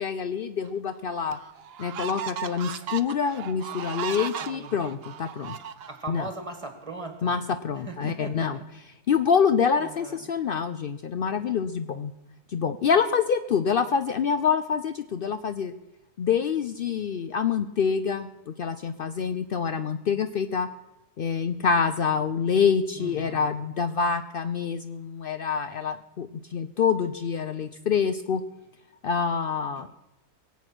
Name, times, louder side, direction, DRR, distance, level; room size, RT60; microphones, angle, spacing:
voice 1, 0.0-1.4 1.8-5.6 6.1-6.3 7.2-8.6 9.1-12.1 12.5-15.7 16.2-20.7 21.2-28.4 29.0-29.9, left 6 dB, 85° left, 11 dB, 0.4 m, -26 dB
sound 1, 0.6-0.7 1.3-6.3, right 9 dB, 60° right, 0.6 m, -36 dB
voice 2, 4.4-4.8 5.9-7.3 7.9-8.6 9.8-10.3 23.0-23.6, right 3 dB, 20° right, 6 dB, 1.9 m, -39 dB
21.5 x 8.2 x 6.1 m, 0.96 s
omnidirectional pair, 1.7 m